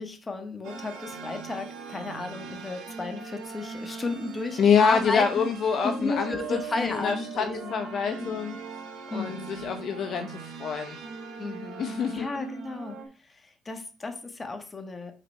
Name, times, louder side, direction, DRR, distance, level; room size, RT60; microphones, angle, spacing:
voice 1, 0.0-5.5 5.8-7.7 8.2-8.4 9.1-9.8 11.4-11.8 12.1-13.0 13.4-15.1, left 3 dB, 25° left, 6 dB, 1.5 m, -33 dB
sound 1, 0.6-13.1, right 5 dB, 75° right, 1.7 m, -40 dB
voice 2, 4.6-7.4 7.7-8.6 9.1-11.0 11.8-12.3, left 6 dB, 55° left, 6 dB, 0.7 m, -26 dB
6.1 x 4.0 x 5.6 m, 0.36 s
cardioid pair, 95°, 0 cm